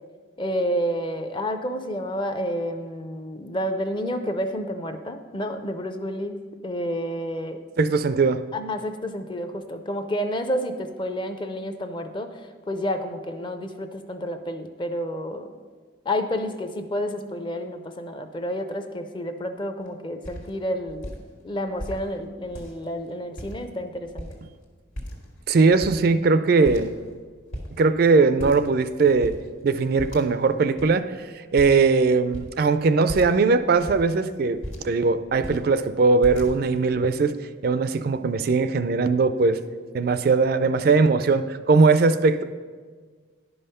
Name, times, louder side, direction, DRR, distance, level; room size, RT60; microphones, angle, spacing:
voice 1, 0.4-7.6 8.5-12.4 12.7-15.5 16.1-21.1 21.4-24.3, equal, 25° left, 8 dB, 0.5 m, -30 dB
voice 2, 7.8-8.4 25.5-26.9 27.8-29.3 29.6-37.3 37.6-39.6 39.9-42.4, right 4 dB, 50° right, 11 dB, 0.3 m, -20 dB
sound 1, 19.8-19.9 20.2-20.5 20.9-21.2 21.8-22.0 22.5-22.9 23.4-23.8 24.0-24.6 25.0-25.4 25.7-26.3 26.6-27.2 27.5-27.7 28.4-28.8 29.1-29.4 30.0-30.5 30.8-30.9 31.6-31.9 32.3-32.5 33.1-33.4 33.8-35.0 35.3-35.6 36.2-36.8, equal, 85° left, 1.9 m, -36 dB
11.0 x 5.5 x 5.5 m, 1.6 s
head